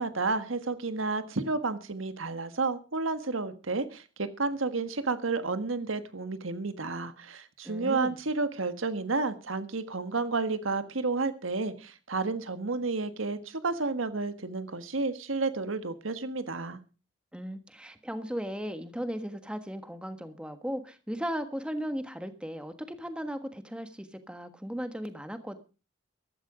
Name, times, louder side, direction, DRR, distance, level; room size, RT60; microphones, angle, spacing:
voice 1, 0.0-16.8, right 3 dB, 80° right, 11 dB, 1.5 m, -31 dB
voice 2, 7.6-8.2 17.3-25.6, equal, 5° right, 8 dB, 1.4 m, -36 dB
15.0 x 12.5 x 5.0 m, 0.34 s
head